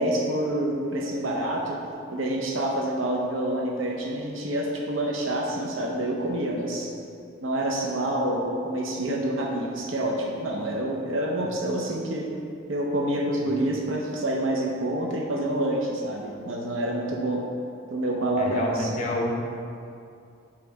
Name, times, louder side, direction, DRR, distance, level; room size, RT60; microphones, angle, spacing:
voice 1, 0.0-1.8 2.1-6.9 7.4-12.3 12.7-17.4 17.9-19.0, right 1 dB, 85° right, -1 dB, 0.7 m, -27 dB
voice 2, 18.4-19.3, left 1 dB, 40° left, 0 dB, 0.8 m, -30 dB
7.0 x 3.3 x 4.7 m, 2.5 s
head